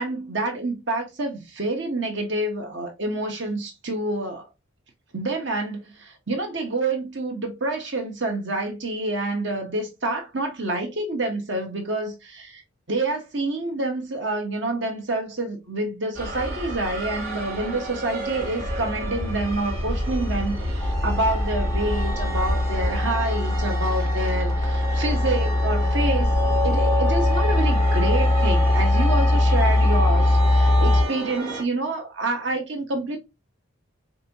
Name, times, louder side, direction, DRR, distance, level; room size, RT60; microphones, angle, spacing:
voice 1, 0.0-4.5 5.1-12.6 12.9-33.2, right 2 dB, 55° right, 1.2 m, -28 dB
sound 1, 16.1-31.6, equal, 80° right, 1.6 m, -30 dB
sound 2, 20.8-31.0, left 1 dB, 10° left, 0.4 m, -21 dB
5.3 x 2.7 x 2.9 m
head